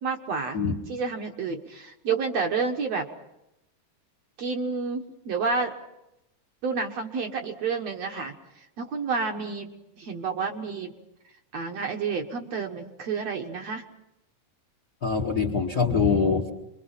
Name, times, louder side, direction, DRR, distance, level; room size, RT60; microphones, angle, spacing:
voice 1, 0.0-0.6 0.9-3.1 4.4-5.7 6.6-8.3 8.8-9.7 10.0-10.9 11.5-13.8, right 5 dB, 60° right, 3 dB, 2.2 m, -29 dB
voice 2, 15.0-16.5, left 5 dB, 40° left, 2 dB, 1.4 m, -24 dB
28.0 x 23.0 x 5.8 m, 0.88 s
omnidirectional pair, 4.0 m